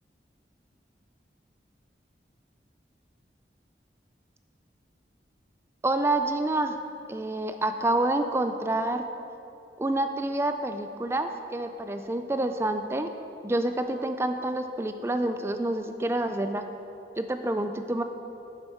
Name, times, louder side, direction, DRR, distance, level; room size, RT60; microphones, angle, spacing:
voice 1, 5.8-6.8 7.1-9.0 9.8-13.1 13.4-16.6 17.2-18.0, right 1 dB, 15° right, 7 dB, 0.3 m, -28 dB
9.8 x 7.9 x 4.5 m, 2.8 s
head